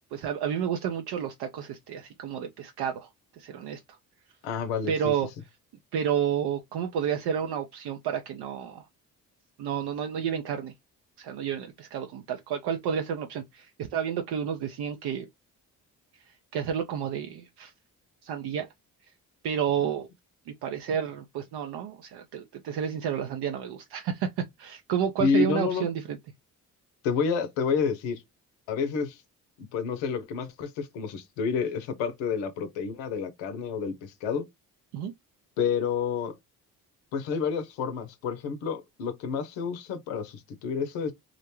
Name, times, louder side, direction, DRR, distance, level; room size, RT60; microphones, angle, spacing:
voice 1, 0.1-3.1 3.4-3.8 4.9-5.3 5.9-8.8 9.6-10.7 11.2-15.3 16.5-17.7 18.2-18.7 19.4-20.1 20.5-26.2 34.9-35.1, right 8 dB, 65° right, 0.5 m, -30 dB
voice 2, 4.4-5.1 25.2-25.9 27.0-28.2 28.7-29.2 29.6-34.5 35.6-36.3 37.1-41.1, left 6 dB, 90° left, 0.6 m, -29 dB
2.5 x 2.1 x 2.9 m
hypercardioid pair, 50°, 42 cm